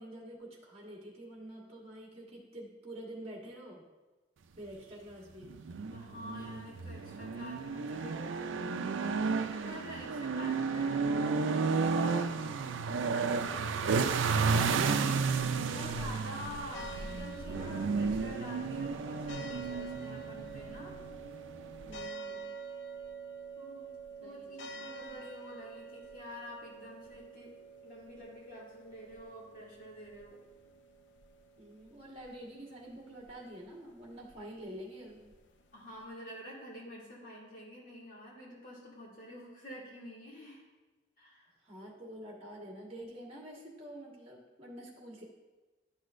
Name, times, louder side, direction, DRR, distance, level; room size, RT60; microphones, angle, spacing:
voice 1, 0.0-3.8 4.6-5.5 21.8-22.5 24.2-24.9 31.6-35.3 41.6-45.2, right 1 dB, 30° right, -4 dB, 1.6 m, -47 dB
sound 1, 5.4-22.1, right 5 dB, 85° right, 0.4 m, -32 dB
voice 2, 5.9-13.5 14.5-21.0 23.6-23.9 24.2-27.6 27.8-30.4 35.7-40.6 41.2-41.5, left 1 dB, 45° left, -5 dB, 2.3 m, -48 dB
sound 2, 16.7-36.0, right 4 dB, 70° left, 0.5 m, -48 dB
11.5 x 6.2 x 2.5 m, 1.2 s
head